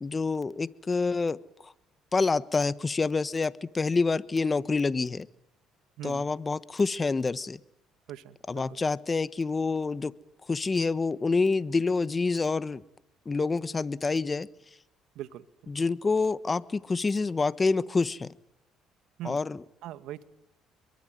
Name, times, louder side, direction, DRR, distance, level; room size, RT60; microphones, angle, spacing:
voice 1, 0.0-1.7 2.1-5.3 6.0-7.6 8.5-10.1 10.5-12.8 13.2-14.5 15.7-18.3 19.2-19.6, left 4 dB, 25° left, 16 dB, 1.3 m, -27 dB
voice 2, 6.0-6.3 8.1-8.8 15.2-15.7 19.2-19.4 19.8-20.2, right 12 dB, 75° right, 12 dB, 1.7 m, -41 dB
27.0 x 23.0 x 9.2 m, 0.79 s
supercardioid pair, 75°, 0 cm